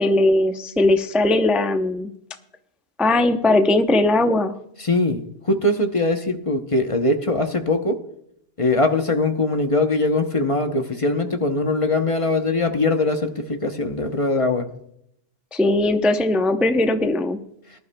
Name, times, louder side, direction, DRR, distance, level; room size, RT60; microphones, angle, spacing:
voice 1, 0.0-2.1 3.0-4.5 15.5-17.4, left 2 dB, ahead, 7 dB, 0.3 m, -19 dB
voice 2, 4.8-8.0 8.6-14.7, left 2 dB, 30° left, 5 dB, 0.7 m, -21 dB
19.5 x 11.5 x 2.2 m, 0.75 s
omnidirectional pair, 1.2 m